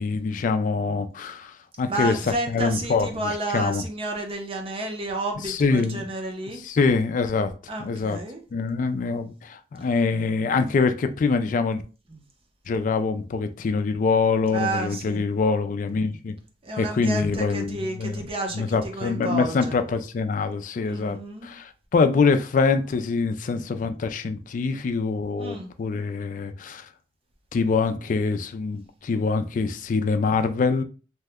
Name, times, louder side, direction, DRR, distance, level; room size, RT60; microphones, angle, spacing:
voice 1, 0.0-2.2 2.5-3.1 3.5-3.8 5.4-6.0 6.6-8.2 8.5-11.8 12.7-16.3 16.8-18.2 18.6-21.2 21.4-26.9 27.5-30.8, left 4 dB, 45° left, 0.3 m, -24 dB
voice 2, 1.9-6.6 7.7-8.4 12.1-12.2 14.5-15.2 16.6-19.8 20.8-21.5 25.4-25.7, right 2 dB, 30° right, 0.6 m, -31 dB
2.7 x 2.1 x 3.4 m
head